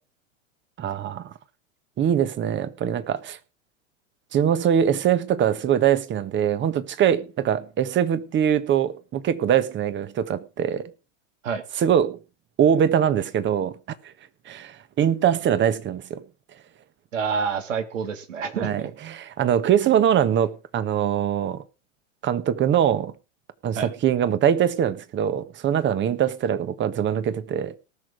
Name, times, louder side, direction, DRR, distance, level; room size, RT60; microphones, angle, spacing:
voice 1, 0.8-1.3 2.0-3.4 4.3-10.9 11.8-12.2 12.6-13.8 14.5-16.2 18.5-21.6 22.2-23.1 23.6-27.8, right 9 dB, 30° right, 1.5 m, -22 dB
voice 2, 17.1-18.9 23.8-23.9, right 6 dB, 75° right, 2.9 m, -28 dB
19.0 x 6.4 x 4.9 m
hypercardioid pair, 100°, 39 cm